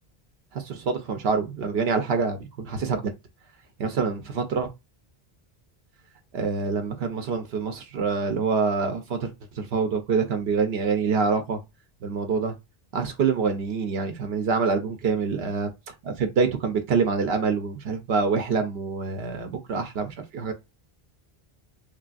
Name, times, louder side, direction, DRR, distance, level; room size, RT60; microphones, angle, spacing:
voice 1, 0.5-3.1 3.8-4.7 6.3-11.6 12.0-12.5 12.9-15.7 16.0-20.5, right 5 dB, 80° right, 0.8 m, -26 dB
3.3 x 2.5 x 2.3 m
omnidirectional pair, 1.0 m